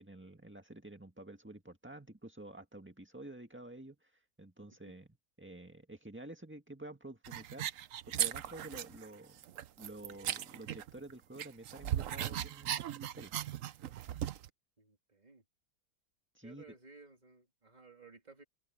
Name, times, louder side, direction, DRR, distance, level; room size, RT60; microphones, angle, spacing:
voice 1, 0.0-4.1 4.4-5.1 5.4-9.4 9.8-13.3 16.3-16.6, right 2 dB, 10° right, 1.7 m, -50 dB
sound 1, 7.2-9.1 9.4-11.1 11.4-14.5, right 11 dB, 65° right, 1.0 m, -38 dB
voice 2, 14.8-15.4 16.4-18.4, right 4 dB, 25° right, 3.0 m, -57 dB
open air
omnidirectional pair, 1.6 m